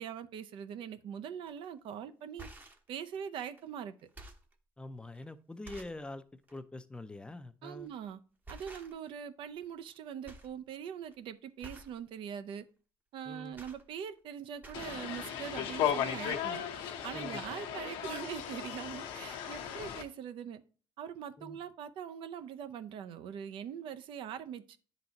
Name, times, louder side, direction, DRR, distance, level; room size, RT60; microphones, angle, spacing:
voice 1, 0.0-2.5 2.9-3.9 7.6-8.2 8.5-12.6 13.1-16.6 17.0-20.6 21.0-24.8, right 8 dB, 65° right, 10 dB, 0.6 m, -42 dB
sound 1, 1.5-1.7 2.2-2.9 3.6-3.7 4.0-4.5 5.1-5.2 5.6-6.0 6.4-6.6 7.8-8.0 8.4-9.2 9.5-10.0 10.2-10.6 10.9-11.1 11.6-12.0 13.2-14.3 14.5-15.1 15.9-16.0 16.2-16.3, right 2 dB, 20° right, 0.8 m, -51 dB
voice 2, 4.8-6.2 6.5-7.9 13.3-13.6 17.1-17.6 21.4-21.6, left 2 dB, 10° left, 11 dB, 0.4 m, -45 dB
sound 2, 14.7-20.0, left 9 dB, 85° left, 1.0 m, -36 dB
10.5 x 3.9 x 2.9 m, 0.40 s
cardioid pair, 120°, 9 cm